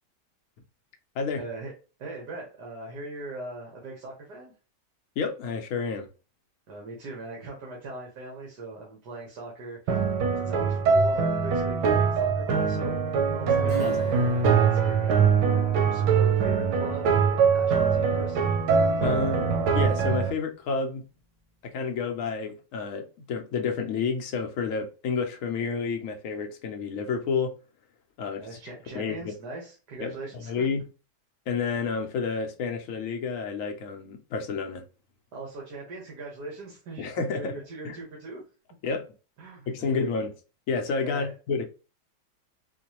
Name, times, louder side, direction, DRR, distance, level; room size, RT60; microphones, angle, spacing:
voice 1, 1.3-1.7 2.0-4.5 6.7-10.0 10.3-18.5 28.3-30.7 35.3-38.4 39.4-40.0 41.0-41.3, right 2 dB, 70° right, 1.6 m, -40 dB
voice 2, 5.2-6.1 13.8-14.0 19.0-21.1 21.6-27.5 28.2-28.5 28.9-29.3 30.0-30.8 31.5-34.8 37.0-37.6 37.8-38.0 38.8-39.1 39.7-40.4 40.7-41.7, left 5 dB, 65° left, 0.9 m, -30 dB
sound 1, 9.9-20.3, right 6 dB, 90° right, 1.4 m, -23 dB
Acoustic guitar / Strum, 13.7-19.9 20.3-20.4, right 2 dB, 35° right, 0.7 m, -42 dB
4.4 x 2.2 x 2.9 m
omnidirectional pair, 1.8 m